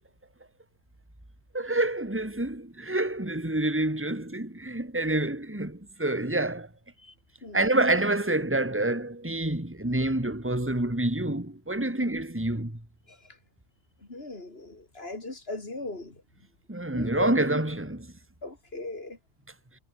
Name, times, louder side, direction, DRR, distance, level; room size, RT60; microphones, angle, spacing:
voice 1, 1.5-6.7 7.5-12.8 16.7-18.1, right 2 dB, 5° right, 3.1 m, -27 dB
voice 2, 7.4-7.8 13.1-13.4 14.1-16.2 16.8-17.5 18.4-19.2, left 2 dB, 35° left, 3.4 m, -37 dB
omnidirectional pair, 1.7 m